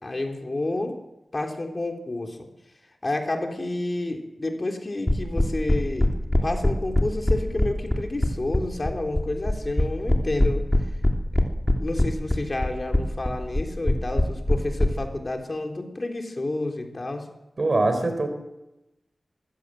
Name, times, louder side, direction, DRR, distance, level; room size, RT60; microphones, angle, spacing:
voice 1, 0.0-1.0 1.3-2.5 3.0-6.1 6.4-10.6 11.8-17.2, left 2 dB, 40° left, 3 dB, 3.4 m, -30 dB
sound 1, 5.1-14.9, left 1 dB, 20° left, 3.2 m, -21 dB
voice 2, 17.6-18.3, right 2 dB, 50° right, 7 dB, 4.2 m, -22 dB
22.5 x 16.0 x 7.8 m, 0.97 s
wide cardioid pair, 70°, 0 cm